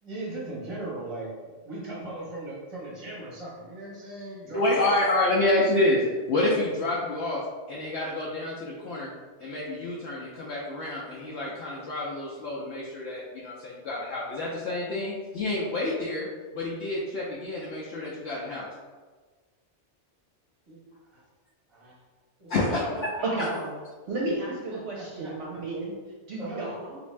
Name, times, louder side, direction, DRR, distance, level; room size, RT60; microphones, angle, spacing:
voice 1, 0.0-5.0 20.7-20.8 21.1-21.2 21.7-22.0 22.4-23.8 24.0-24.3 24.7-25.6 26.4-26.7, right 2 dB, 30° right, -6 dB, 0.9 m, -38 dB
voice 2, 4.5-7.4 7.7-9.1 9.4-16.3 16.5-18.7 22.5-23.1 23.4-23.5, left 2 dB, 70° left, -5 dB, 0.8 m, -28 dB
voice 3, 24.1-25.9 26.3-27.0, right 2 dB, 65° right, -3 dB, 0.8 m, -32 dB
3.5 x 2.5 x 3.1 m, 1.4 s
omnidirectional pair, 1.2 m